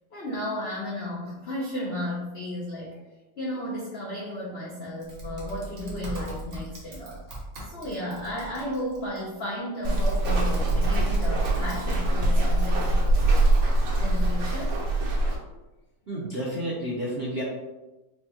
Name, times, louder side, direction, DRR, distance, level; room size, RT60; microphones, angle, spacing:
voice 1, 0.1-3.0 3.4-7.2 7.7-13.4 14.0-14.8, left 1 dB, 75° left, -5 dB, 0.5 m, -34 dB
Typing, 5.0-9.2 9.8-12.1, right 2 dB, 45° right, 0.9 m, -38 dB
Walk footsteps, 9.8-15.3, right 2 dB, 80° right, 1.7 m, -23 dB
voice 2, 16.1-17.4, right 1 dB, 60° right, -7 dB, 0.6 m, -31 dB
4.8 x 2.2 x 2.8 m, 1.1 s
omnidirectional pair, 2.0 m